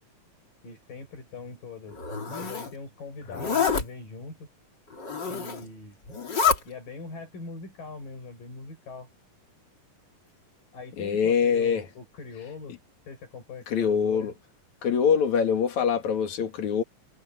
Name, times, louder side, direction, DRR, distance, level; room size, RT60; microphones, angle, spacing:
voice 1, 0.6-2.0 2.3-4.5 5.2-6.0 6.7-9.1 10.7-12.8 13.1-14.3, left 4 dB, 90° left, 9.3 m, -42 dB
Zipper (clothing), 1.9-2.7 3.3-3.8 4.9-5.7 6.1-6.6, left 6 dB, 35° left, 3.1 m, -27 dB
voice 2, 11.0-11.8 13.7-14.3 14.8-16.8, left 7 dB, 60° left, 3.5 m, -24 dB
omnidirectional pair, 3.8 m